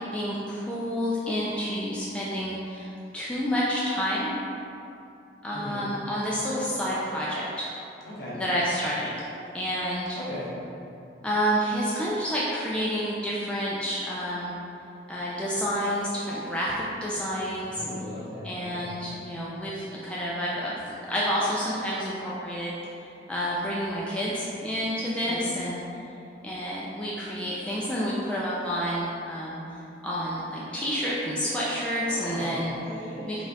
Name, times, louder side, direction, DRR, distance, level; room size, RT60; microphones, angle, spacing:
voice 1, 0.1-2.9 3.1-4.3 5.4-7.7 8.3-9.1 9.5-10.2 11.2-14.5 15.1-17.8 18.4-20.7 21.1-22.8 23.3-25.8 26.4-32.7 33.3-33.4, equal, 5° left, -7 dB, 0.3 m, -29 dB
voice 2, 5.5-5.9 8.0-8.4 10.1-10.4 17.6-19.0 25.2-25.5 32.1-33.3, equal, 65° left, -8 dB, 1.1 m, -38 dB
4.1 x 2.4 x 4.0 m, 2.7 s
head